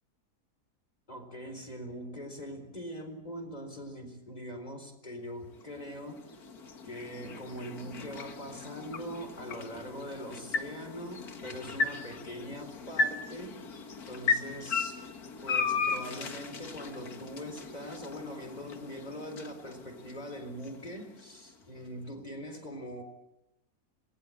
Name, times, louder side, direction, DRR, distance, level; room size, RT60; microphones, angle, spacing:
voice 1, 1.1-6.2 6.8-13.6 14.1-15.0 15.4-23.0, equal, 25° left, 6 dB, 4.3 m, -42 dB
sound 1, 5.4-21.6, left 4 dB, 75° left, 2.3 m, -36 dB
26.5 x 21.0 x 8.9 m, 0.91 s
omnidirectional pair, 1.6 m